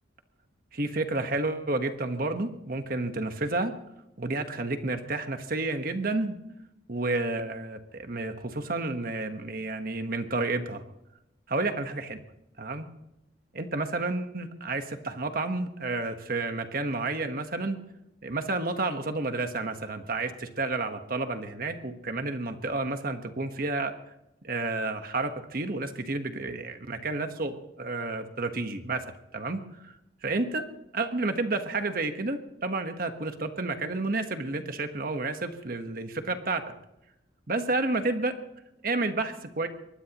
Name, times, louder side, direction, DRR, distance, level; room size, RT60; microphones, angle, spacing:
voice 1, 0.7-3.7 4.2-6.3 6.9-10.8 11.5-12.2 12.6-12.9 13.5-17.8 18.2-23.9 24.4-29.0 29.3-30.0 30.2-30.6 30.9-36.7 37.5-38.3 38.8-39.7, right 2 dB, 50° right, 7 dB, 1.3 m, -30 dB
24.0 x 20.0 x 3.0 m, 0.88 s
head